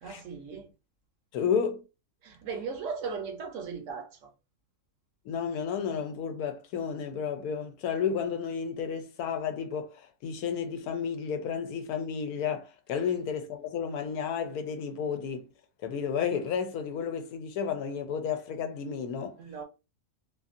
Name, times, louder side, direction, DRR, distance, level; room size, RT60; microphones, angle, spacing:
voice 1, 0.0-0.7 2.2-4.3 19.4-19.6, right 5 dB, 65° right, 0.9 m, -37 dB
voice 2, 1.3-1.8 5.3-15.5 15.8-19.4, left 7 dB, 85° left, 1.1 m, -32 dB
2.7 x 2.6 x 2.4 m
omnidirectional pair, 1.5 m